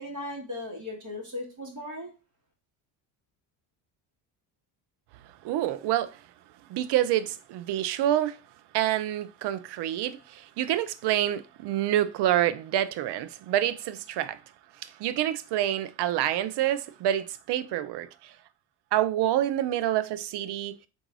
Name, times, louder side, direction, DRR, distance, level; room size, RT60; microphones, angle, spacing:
voice 1, 0.0-2.1, left 1 dB, 40° right, 2.0 m, -37 dB
voice 2, 5.4-6.1 6.7-8.4 8.7-14.4 14.8-18.3 18.9-20.8, right 12 dB, 60° right, 0.6 m, -27 dB
3.7 x 2.7 x 4.7 m
cardioid pair, 95°, 46 cm